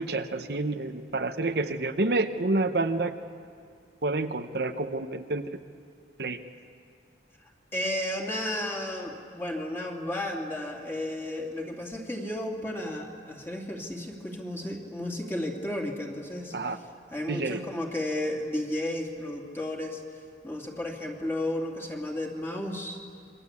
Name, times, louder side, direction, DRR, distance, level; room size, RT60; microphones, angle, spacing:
voice 1, 0.0-3.1 4.0-5.4 6.2-6.4 16.5-16.8 17.3-17.6, right 2 dB, 65° right, 7 dB, 1.0 m, -28 dB
voice 2, 7.7-16.5 17.1-20.0 20.4-23.0, left 1 dB, 15° left, 0 dB, 2.9 m, -33 dB
27.0 x 23.5 x 8.4 m, 2.2 s
head